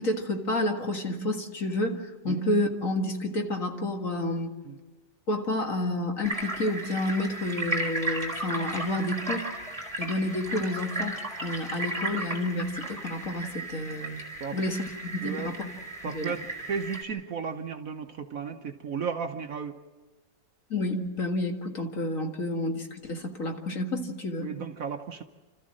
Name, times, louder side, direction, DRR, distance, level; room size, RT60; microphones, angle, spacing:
voice 1, 0.0-4.5 5.3-9.5 10.0-14.2 14.5-15.7 16.1-16.3 20.7-24.6, left 1 dB, 45° left, 3 dB, 2.2 m, -30 dB
sound 1, 6.2-17.0, right 2 dB, 20° right, 4.0 m, -35 dB
voice 2, 16.0-19.8 24.4-25.2, right 6 dB, 55° right, 5 dB, 1.2 m, -34 dB
30.0 x 14.0 x 7.6 m, 1.3 s
omnidirectional pair, 2.0 m